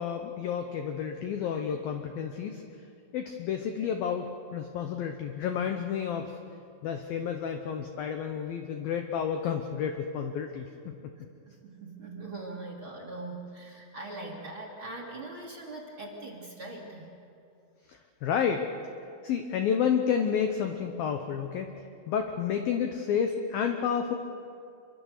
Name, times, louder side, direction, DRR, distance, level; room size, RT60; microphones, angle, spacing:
voice 1, 0.0-2.6 3.1-6.4 6.8-10.9 18.2-18.7 19.2-21.7 22.1-24.1, left 7 dB, 80° left, 5 dB, 2.1 m, -30 dB
voice 2, 11.2-17.1, right 2 dB, 35° right, 0 dB, 2.7 m, -41 dB
26.5 x 24.0 x 6.6 m, 2.5 s
omnidirectional pair, 5.6 m